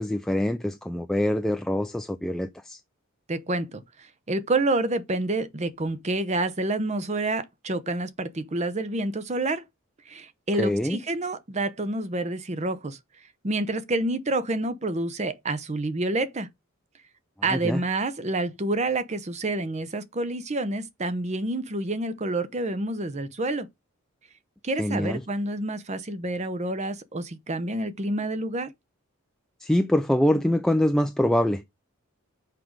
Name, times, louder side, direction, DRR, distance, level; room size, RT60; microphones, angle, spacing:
voice 1, 0.0-2.8 10.6-11.0 17.5-17.8 24.8-25.2 29.6-31.6, left 1 dB, 5° left, 0.3 m, -24 dB
voice 2, 3.3-9.6 10.1-13.0 13.4-16.5 17.4-23.7 24.6-28.7, right 2 dB, 30° right, 0.7 m, -28 dB
5.9 x 5.1 x 4.6 m
head